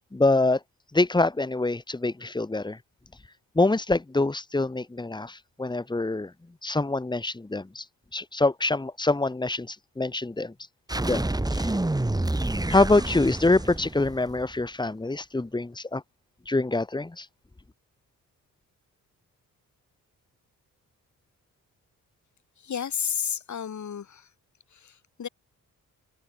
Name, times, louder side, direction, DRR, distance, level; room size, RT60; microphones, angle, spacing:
voice 1, 0.1-0.6 0.9-2.8 3.6-6.3 6.6-7.8 8.1-10.5 11.1-11.8 12.7-16.0 16.5-17.3, left 2 dB, 15° left, 2.4 m, -25 dB
construct explosion, 10.9-14.6, right 1 dB, 10° right, 7.2 m, -28 dB
voice 2, 22.6-24.3 24.7-25.3, left 7 dB, 55° left, 7.8 m, -32 dB
cardioid pair, 120°, 33 cm